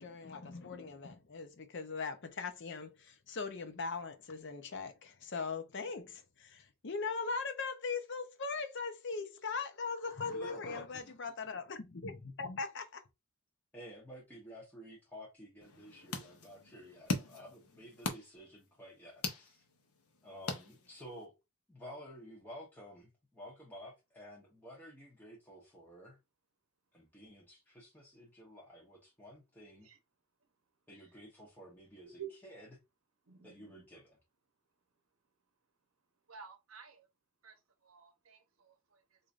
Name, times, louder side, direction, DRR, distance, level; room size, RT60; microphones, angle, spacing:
voice 1, 0.0-13.0, left 4 dB, 55° left, 0.6 m, -40 dB
voice 2, 10.3-11.2 13.7-19.7 20.2-21.3 21.7-26.2 26.9-29.9 30.9-32.7 33.4-34.2, equal, 10° left, 0.9 m, -52 dB
sound 1, 15.6-21.3, left 3 dB, 85° left, 0.8 m, -42 dB
voice 3, 33.3-33.9 36.3-37.1 37.4-39.2, right 8 dB, 70° right, 0.8 m, -52 dB
4.7 x 2.6 x 2.4 m
head